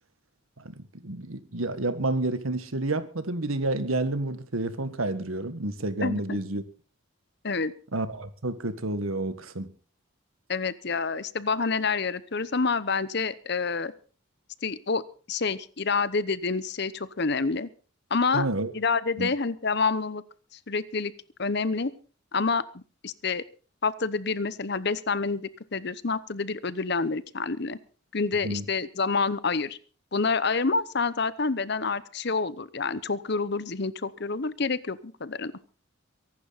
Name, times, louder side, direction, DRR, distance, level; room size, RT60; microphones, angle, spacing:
voice 1, 0.6-6.6 7.9-9.7 18.3-18.7 19.2-19.3 28.4-28.7, right 2 dB, 90° right, 1.7 m, -30 dB
voice 2, 6.0-6.4 7.4-7.7 10.5-13.9 14.6-15.0 15.3-17.7 18.1-18.5 18.7-20.2 20.7-21.1 21.4-21.9 22.3-23.4 23.8-27.8 28.1-29.8 30.1-35.5, left 4 dB, 55° left, 0.9 m, -28 dB
23.0 x 11.5 x 4.1 m
head